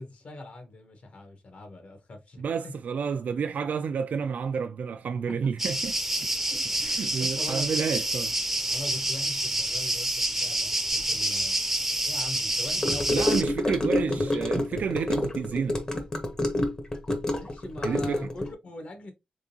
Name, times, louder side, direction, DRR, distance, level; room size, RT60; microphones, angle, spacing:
voice 1, 0.0-2.7 5.3-5.4 6.5-8.1 8.7-11.6 12.1-13.4 17.4-19.1, left 2 dB, 60° left, 1.1 m, -42 dB
voice 2, 2.4-6.0 6.8-8.3 13.1-15.8 17.8-18.2, right 6 dB, 85° right, 0.3 m, -30 dB
sound 1, 5.6-13.4, right 1 dB, 10° right, 0.5 m, -28 dB
Gurgling / Car passing by / Sink (filling or washing), 12.8-18.5, left 1 dB, 30° left, 0.8 m, -28 dB
3.7 x 3.6 x 2.7 m
wide cardioid pair, 165°, 3 cm